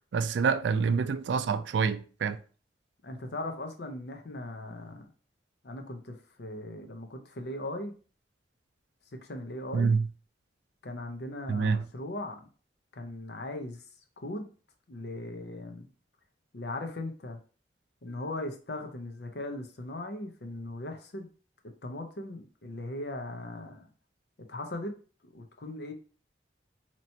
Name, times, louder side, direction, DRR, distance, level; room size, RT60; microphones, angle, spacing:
voice 1, 0.1-2.4 9.7-10.1 11.5-11.8, right 5 dB, 80° right, 0.3 m, -27 dB
voice 2, 3.0-5.1 5.6-7.9 9.2-9.9 10.8-12.5 12.9-13.8 14.2-14.5 14.9-15.9 16.5-17.4 18.0-21.3 21.8-23.9 24.4-24.9 25.2-25.9, left 1 dB, 70° left, 0.7 m, -38 dB
4.3 x 3.0 x 2.8 m
head